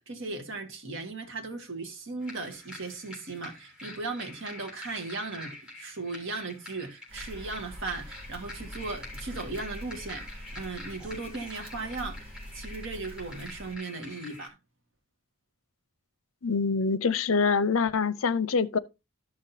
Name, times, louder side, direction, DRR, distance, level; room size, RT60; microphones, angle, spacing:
voice 1, 0.0-12.3 12.5-14.6, right 3 dB, 60° right, 1.8 m, -37 dB
sound 1, 2.2-14.5, left 2 dB, 5° right, 3.1 m, -46 dB
sound 2, 7.1-13.8, equal, 25° right, 2.5 m, -44 dB
voice 2, 16.4-18.8, left 5 dB, 65° left, 0.6 m, -25 dB
13.5 x 5.8 x 2.7 m
head